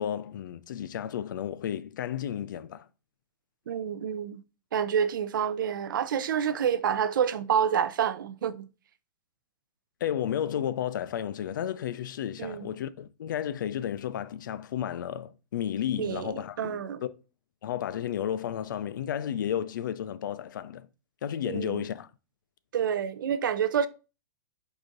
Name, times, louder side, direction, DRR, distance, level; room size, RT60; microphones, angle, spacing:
voice 1, 0.0-2.9 10.0-17.1 17.6-20.9 21.2-22.1, left 10 dB, 80° left, 0.4 m, -32 dB
voice 2, 3.7-4.4 4.7-8.7 12.4-12.7 16.0-17.0 21.4-21.8 22.7-23.9, right 8 dB, 90° right, 0.5 m, -28 dB
4.8 x 2.6 x 3.8 m
hypercardioid pair, 160°, 10 cm